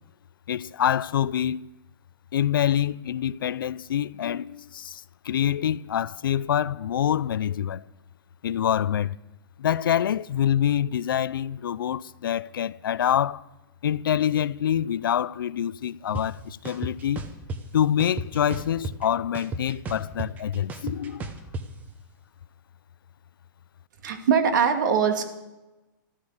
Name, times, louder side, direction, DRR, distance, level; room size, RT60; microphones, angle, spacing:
voice 1, 0.5-1.7 2.3-7.8 8.4-9.1 9.6-13.4 13.8-17.3 17.7-21.3, left 10 dB, 90° left, 0.5 m, -26 dB
sound 1, 16.1-16.2 16.6-17.6 18.0-19.1 19.3-21.6, right 2 dB, 15° right, 1.0 m, -33 dB
voice 2, 24.0-25.2, right 7 dB, 60° right, 2.3 m, -22 dB
14.0 x 14.0 x 6.5 m
hypercardioid pair, 165°, 11 cm